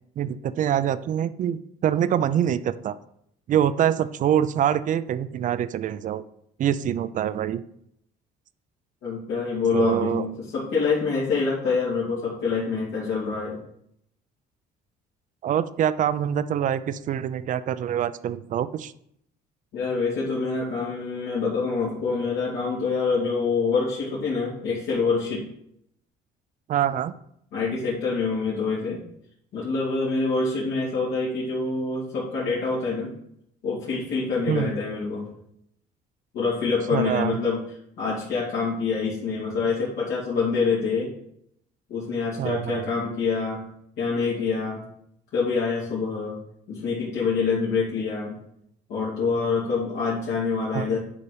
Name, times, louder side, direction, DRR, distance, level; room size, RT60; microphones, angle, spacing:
voice 1, 0.2-3.0 3.5-6.2 6.6-7.6 9.7-10.2 15.4-18.9 26.7-27.1 34.5-34.7 36.9-37.4 42.4-42.9 50.7-51.0, right 10 dB, 50° right, 14 dB, 0.5 m, -25 dB
voice 2, 9.0-13.6 19.7-25.4 27.5-29.0 29.5-33.1 33.6-35.3 36.3-37.6 38.0-41.1 41.9-43.6 44.0-44.8 45.3-46.4 46.7-48.4 48.9-51.0, left 4 dB, 80° left, -8 dB, 2.9 m, -26 dB
9.9 x 4.1 x 5.1 m, 0.73 s
cardioid pair, 110°, 17 cm